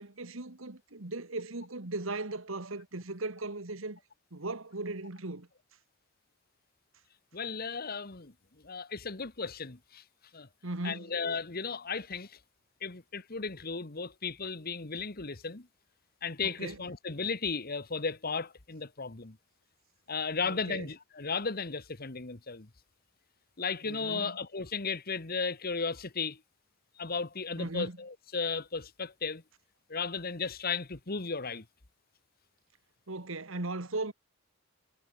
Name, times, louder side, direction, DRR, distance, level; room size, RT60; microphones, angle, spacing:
voice 1, 0.0-4.0 4.3-5.5 10.6-11.1 16.4-16.8 20.4-20.9 23.8-24.4 27.6-28.0 33.1-34.1, right 2 dB, 70° right, 1.9 m, -38 dB
voice 2, 7.3-8.3 8.6-10.0 10.3-10.5 10.8-12.4 12.8-15.7 16.2-19.4 20.1-22.7 23.6-26.4 27.0-29.4 29.9-31.6, left 5 dB, 45° left, 1.5 m, -35 dB
head